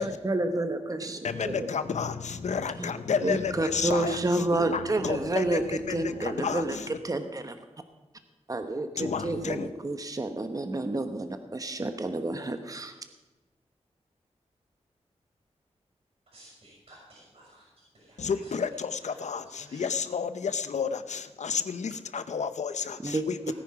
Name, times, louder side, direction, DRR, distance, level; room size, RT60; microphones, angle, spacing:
voice 1, 0.0-1.7 2.8-2.9 3.2-5.6 5.9-6.8 7.0-7.6 8.5-13.0 23.0-23.5, right 2 dB, 30° right, 1.1 m, -30 dB
voice 2, 1.2-7.0 9.0-9.7 18.2-23.5, left 6 dB, 85° left, 0.8 m, -31 dB
voice 3, 16.3-18.6 19.0-20.0 23.4-23.5, right 1 dB, 60° right, 6.2 m, -55 dB
18.0 x 10.0 x 4.9 m
wide cardioid pair, 95°, 12 cm